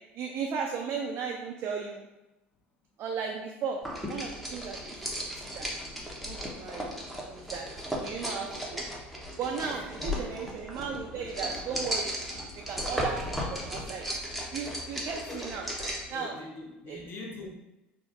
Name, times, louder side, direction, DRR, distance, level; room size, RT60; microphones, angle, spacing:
voice 1, 0.2-2.1 3.0-3.8 4.1-5.7 6.2-6.9 7.3-7.7 8.0-8.8 9.4-12.1 12.5-14.1 14.5-15.7 16.1-16.3 16.9-17.0, right 6 dB, 40° right, 1 dB, 0.3 m, -36 dB
sound 1, 3.9-16.1, equal, ahead, 0.6 m, -36 dB
voice 2, 9.7-10.4 15.3-15.5 16.1-17.5, left 2 dB, 35° left, -1 dB, 0.7 m, -43 dB
4.5 x 2.0 x 2.3 m, 0.97 s
figure-of-eight pair, 65°, 6 cm